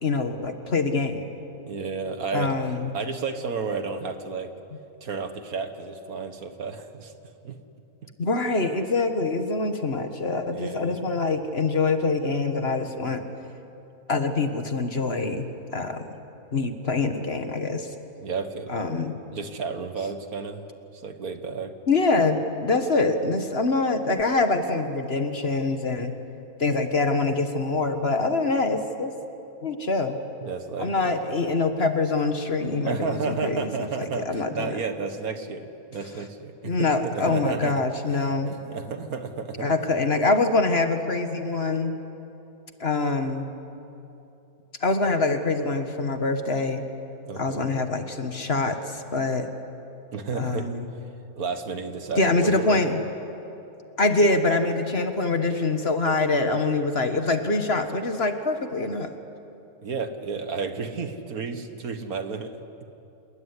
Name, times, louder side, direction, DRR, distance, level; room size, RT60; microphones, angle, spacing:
voice 1, 0.0-1.3 2.3-2.9 8.2-13.2 14.1-15.5 15.7-16.1 16.5-17.9 18.7-19.2 21.9-26.1 26.6-29.1 29.6-30.2 30.8-34.8 36.6-38.5 39.6-41.9 42.8-43.5 44.8-46.8 47.4-49.5 50.3-50.9 52.2-53.0 54.0-59.1, left 3 dB, 40° left, 7 dB, 1.7 m, -25 dB
voice 2, 1.7-2.5 2.9-4.5 5.0-7.1 7.4-7.5 10.5-11.0 18.2-18.9 19.3-20.7 20.9-21.7 30.4-31.2 32.8-37.8 38.1-39.7 47.3-47.7 50.1-50.7 51.4-53.0 59.8-62.5, right 5 dB, 70° right, 8 dB, 2.0 m, -32 dB
27.0 x 21.0 x 9.8 m, 2.9 s
omnidirectional pair, 1.6 m